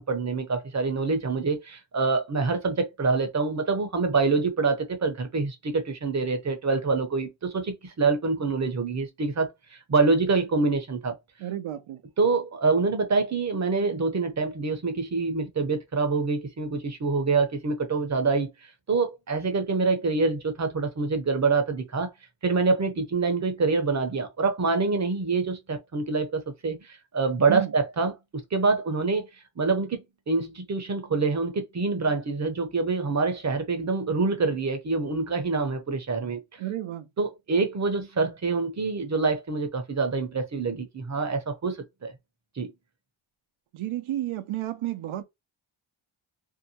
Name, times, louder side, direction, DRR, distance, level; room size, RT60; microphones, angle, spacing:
voice 1, 0.0-11.2 12.2-18.5 18.9-22.1 22.4-28.1 28.5-29.3 29.6-36.6 37.2-42.1 42.6-42.7, right 4 dB, 35° right, 0.7 m, -26 dB
voice 2, 11.4-12.0 27.5-27.7 36.6-37.1 43.7-45.2, right 13 dB, 80° right, 0.6 m, -31 dB
2.7 x 2.1 x 2.7 m
wide cardioid pair, 95°, 49 cm